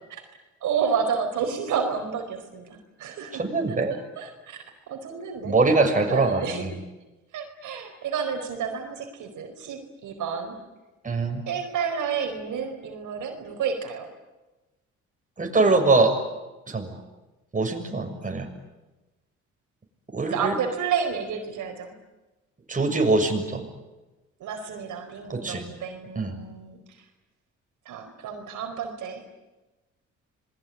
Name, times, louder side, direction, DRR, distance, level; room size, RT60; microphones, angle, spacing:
voice 1, 0.6-3.4 3.9-5.5 6.1-6.7 7.3-10.6 11.5-14.1 20.3-21.9 24.4-26.8 27.8-29.2, right 6 dB, 80° right, 4 dB, 4.7 m, -30 dB
voice 2, 3.3-3.9 5.4-6.8 11.0-11.4 15.4-16.2 16.7-17.0 17.5-18.5 20.1-20.5 22.7-23.6 25.3-25.6 26.1-26.3, right 3 dB, 25° right, 2 dB, 6.7 m, -23 dB
27.5 x 22.0 x 9.7 m, 1.1 s
cardioid pair, 90°, 30 cm